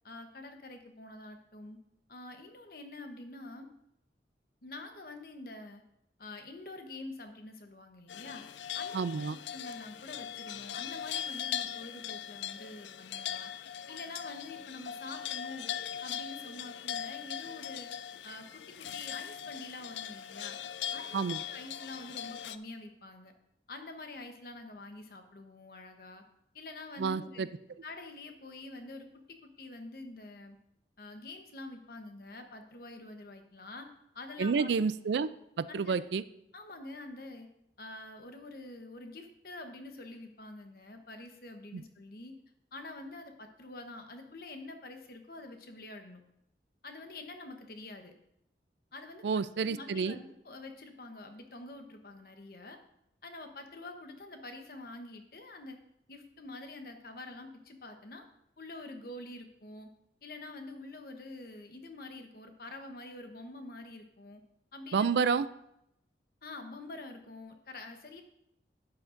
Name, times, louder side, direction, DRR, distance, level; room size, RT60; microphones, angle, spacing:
voice 1, 0.0-1.8 2.1-3.7 4.6-5.8 6.2-8.4 8.7-9.0 9.5-13.5 13.9-15.7 16.0-17.9 18.2-20.6 20.9-23.3 23.7-26.2 26.5-27.5 27.8-30.6 31.0-33.9 34.1-34.7 35.7-36.0 36.5-37.5 37.8-42.4 42.7-46.2 46.8-48.1 48.9-49.3 49.7-52.8 53.2-55.8 56.1-58.2 58.6-59.9 60.2-64.4 64.7-65.3 66.4-68.2, left 2 dB, 55° left, 5 dB, 1.0 m, -46 dB
sound 1, 8.1-22.6, left 10 dB, 90° left, 0.4 m, -40 dB
voice 2, 8.9-9.4 21.1-21.4 27.0-27.5 34.4-35.3 35.6-36.2 41.7-41.8 49.2-50.2 64.9-65.5, right 5 dB, 80° right, 15 dB, 0.4 m, -29 dB
11.5 x 8.8 x 2.6 m, 0.80 s
head